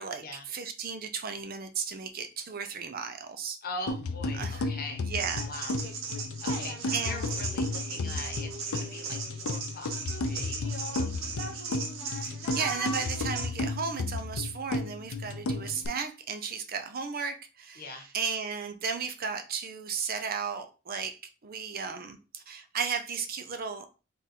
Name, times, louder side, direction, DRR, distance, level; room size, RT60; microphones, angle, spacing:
voice 1, 0.0-3.6 4.3-4.7 5.1-5.4 6.9-7.2 12.1-17.8 18.1-23.9, right 6 dB, 45° right, 0.6 m, -35 dB
voice 2, 3.6-5.2 5.5-5.8 6.4-11.6 17.8-18.1, left 2 dB, 45° left, 1.0 m, -42 dB
sound 1, 3.9-15.9, left 2 dB, 80° left, 0.5 m, -33 dB
sound 2, 5.1-13.5, right 4 dB, 70° right, 1.0 m, -37 dB
3.6 x 2.6 x 4.2 m
head